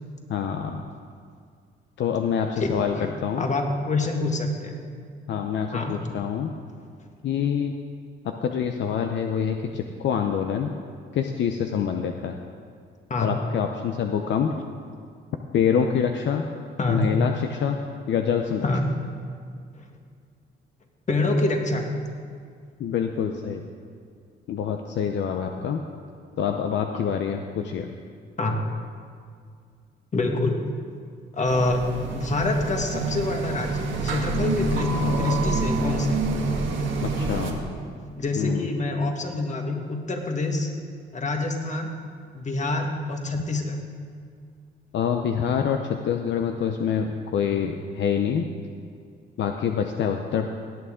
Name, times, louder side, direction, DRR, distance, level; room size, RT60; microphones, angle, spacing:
voice 1, 0.3-0.8 2.0-3.5 5.3-6.5 7.2-7.7 8.2-10.7 11.1-12.4 13.2-14.5 15.5-16.5 16.9-17.8 18.1-18.7 21.4-21.5 22.8-23.6 24.5-25.8 26.4-28.0 37.0-37.6 38.3-38.7 43.3-43.4 44.9-48.5 49.4-50.5, left 7 dB, 65° left, 4 dB, 0.7 m, -26 dB
voice 2, 3.4-4.8 5.7-6.0 13.1-13.3 16.8-17.1 18.6-18.8 19.8-19.9 21.1-21.9 28.4-28.5 30.1-30.6 31.4-36.2 38.2-40.7 41.1-41.9 42.3-43.8, left 2 dB, 35° left, 3 dB, 1.7 m, -26 dB
sound 1, 31.5-37.5, right 3 dB, 70° right, 1.6 m, -27 dB
18.0 x 8.6 x 3.7 m, 2.2 s
cardioid pair, 90°, 20 cm